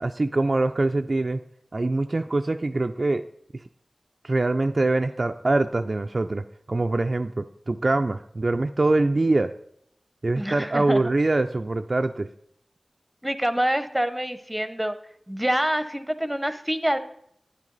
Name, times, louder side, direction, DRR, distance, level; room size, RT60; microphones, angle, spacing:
voice 1, 0.0-1.4 1.7-3.2 3.5-3.6 4.2-6.4 6.7-9.5 10.2-12.3, right 2 dB, 50° right, 7 dB, 0.4 m, -24 dB
voice 2, 10.4-11.0 13.2-15.0 15.3-17.0, equal, 10° right, 11 dB, 0.8 m, -26 dB
10.5 x 9.7 x 3.9 m, 0.71 s
wide cardioid pair, 55°, 0 cm